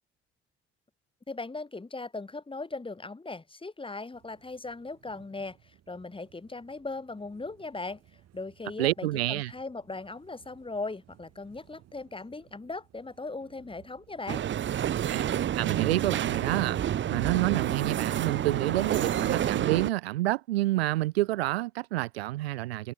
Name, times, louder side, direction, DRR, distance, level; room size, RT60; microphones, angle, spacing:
voice 1, 1.3-8.0 8.3-14.5, left 3 dB, 15° left, 2.1 m, -38 dB
sound 1, 4.1-17.7, right 13 dB, 55° right, 3.1 m, -61 dB
voice 2, 8.8-9.5 15.1-15.2 15.6-16.8 17.1-22.9, right 17 dB, 80° right, 0.5 m, -28 dB
sound 2, 14.3-19.9, right 10 dB, 40° right, 0.8 m, -29 dB
figure-of-eight pair, 50°, 30 cm